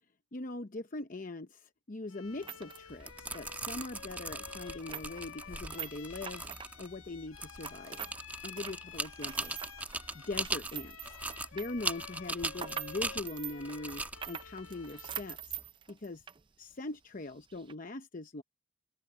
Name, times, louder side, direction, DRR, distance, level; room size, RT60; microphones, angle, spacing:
voice 1, 0.3-6.4 6.8-8.0 8.4-9.6 10.1-11.2 11.5-15.6 15.9-16.2 16.6-18.4, left 2 dB, 40° left, 0.8 m, -41 dB
Bowed string instrument, 2.1-15.5, left 7 dB, 80° left, 1.5 m, -51 dB
sound 1, 2.2-8.2 8.5-16.4 16.7-16.8 17.5-17.7, right 8 dB, 25° right, 0.4 m, -45 dB
sound 2, 2.9-15.7, right 2 dB, 10° right, 1.3 m, -40 dB
open air
head